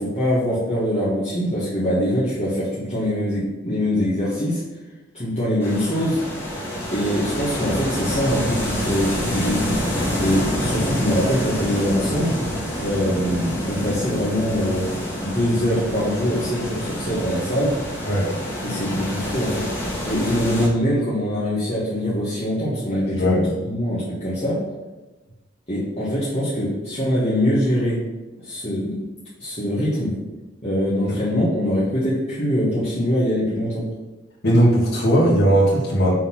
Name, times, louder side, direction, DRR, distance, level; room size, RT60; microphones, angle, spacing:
voice 1, 0.0-4.6 5.1-6.2 6.9-12.4 12.8-14.9 15.2-17.8 18.6-24.6 25.7-28.0 28.4-29.0 29.4-30.1 30.6-33.9, equal, 35° left, -10 dB, 2.0 m, -23 dB
sound 1, 5.6-20.7, equal, 10° left, 2.0 m, -27 dB
voice 2, 23.1-23.4 31.1-31.2 34.4-36.1, equal, 55° left, -7 dB, 2.6 m, -18 dB
7.3 x 4.2 x 5.7 m, 1.1 s
head